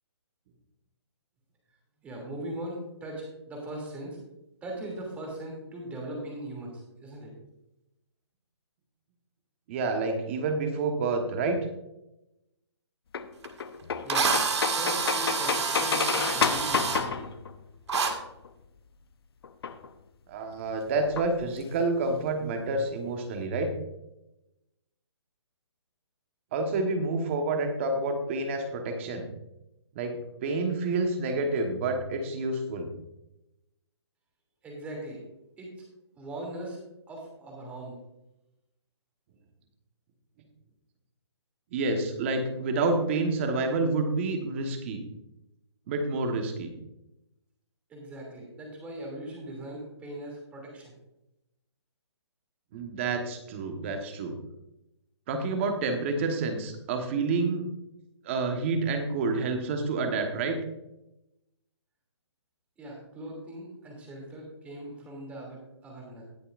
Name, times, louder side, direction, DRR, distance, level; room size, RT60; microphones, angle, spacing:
voice 1, 2.0-4.2 4.6-7.3 14.0-14.4 14.8-17.3 34.6-35.2 35.6-35.7 36.2-36.8 37.1-38.0 47.9-50.9 62.8-66.2, right 1 dB, 10° right, -1 dB, 2.7 m, -39 dB
voice 2, 9.7-11.6 20.3-23.7 26.5-29.2 29.9-32.9 41.7-45.0 45.9-46.7 52.7-54.3 55.3-57.7 58.2-60.6, right 3 dB, 25° right, 5 dB, 1.2 m, -28 dB
sound 1, 13.1-18.5 19.4-19.9 21.1-21.8 22.1-22.2 22.4-22.5 22.8-23.2, left 6 dB, 55° left, 0.8 m, -31 dB
Drill, 13.4-13.5 14.1-17.0 17.9-18.1, right 5 dB, 65° right, 1.9 m, -28 dB
19.0 x 6.8 x 2.5 m, 0.90 s
hypercardioid pair, 165°, 15 cm